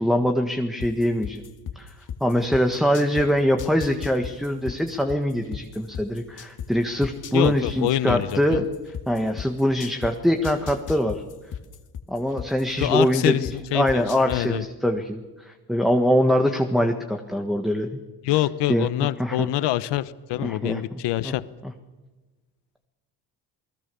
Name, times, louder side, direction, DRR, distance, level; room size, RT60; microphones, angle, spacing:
voice 1, 0.0-1.4 1.7-11.2 12.1-17.9 18.7-19.5 20.4-21.3 21.6-21.7, equal, ahead, 4 dB, 1.5 m, -23 dB
sound 1, 0.8-3.2 3.6-6.7 7.0-10.1 10.4-13.5 13.9-14.4, left 8 dB, 45° left, 2.2 m, -34 dB
voice 2, 7.3-8.6 12.8-14.6 18.2-21.4, left 14 dB, 75° left, 15 dB, 1.1 m, -25 dB
28.5 x 20.0 x 7.0 m, 1.2 s
cardioid pair, 125°, 41 cm